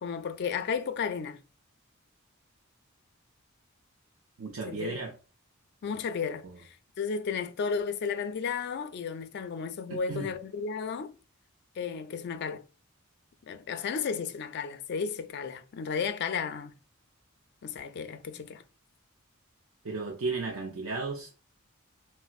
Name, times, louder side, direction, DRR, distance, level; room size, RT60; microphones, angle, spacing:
voice 1, 0.0-1.4 4.7-5.0 5.8-11.2 11.8-12.6 13.5-16.7 17.6-18.6, left 6 dB, 55° left, 0.4 m, -33 dB
voice 2, 4.4-5.2 6.4-6.6 9.9-10.3 19.8-21.5, right 3 dB, 70° right, 0.5 m, -35 dB
4.0 x 2.0 x 2.4 m
head